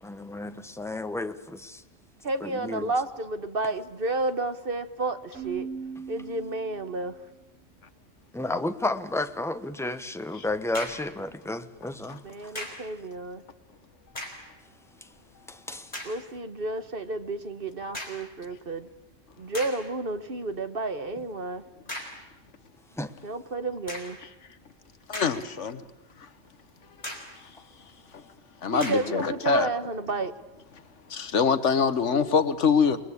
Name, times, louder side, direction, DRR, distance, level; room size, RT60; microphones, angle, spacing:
voice 1, 0.0-1.8 2.4-2.9 8.3-12.5 15.5-15.9 23.0-23.1, left 2 dB, ahead, 1.0 m, -32 dB
voice 2, 2.2-5.7 6.1-7.2 12.2-13.4 16.0-18.9 19.4-21.6 23.2-24.2 28.7-30.3, right 3 dB, 50° right, 1.4 m, -31 dB
Keyboard (musical), 5.3-7.2, right 6 dB, 90° right, 6.5 m, -39 dB
sound 1, 10.7-11.2 12.6-12.9 14.1-14.5 15.1-15.2 15.9-16.2 17.9-18.3 19.0-19.1 19.5-19.9 21.9-22.3 23.9-24.2 24.9-25.7 26.1-26.2 27.0-27.4 28.8-29.2, left 1 dB, 30° left, 5.3 m, -38 dB
voice 3, 25.1-25.8 28.6-29.7 31.2-33.0, left 6 dB, 70° left, 1.5 m, -24 dB
28.0 x 20.5 x 8.6 m
omnidirectional pair, 1.3 m